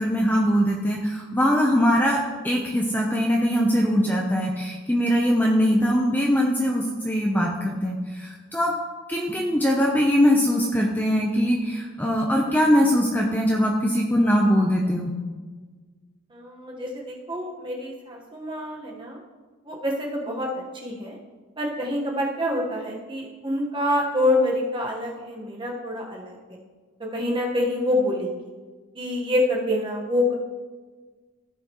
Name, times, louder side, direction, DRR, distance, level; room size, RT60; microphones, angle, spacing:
voice 1, 0.0-8.7 9.1-15.1, equal, 10° left, -1 dB, 0.6 m, -22 dB
voice 2, 16.3-19.2 19.6-21.2 21.6-26.6 27.1-28.4 28.9-30.3, left 1 dB, 25° right, -1 dB, 1.2 m, -26 dB
14.5 x 5.0 x 3.0 m, 1.4 s
head